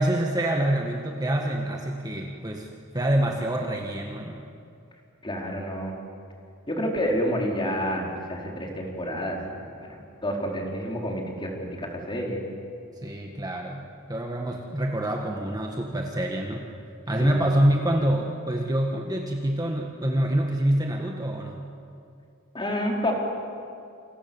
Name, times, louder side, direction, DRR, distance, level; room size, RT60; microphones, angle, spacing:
voice 1, 0.0-2.7 2.9-4.4 13.0-16.7 17.1-21.7, right 1 dB, 20° right, 1 dB, 1.7 m, -26 dB
voice 2, 5.2-5.9 6.7-12.4 17.2-17.5 22.5-23.1, equal, 25° left, -1 dB, 4.6 m, -29 dB
28.0 x 28.0 x 7.3 m, 2.5 s
head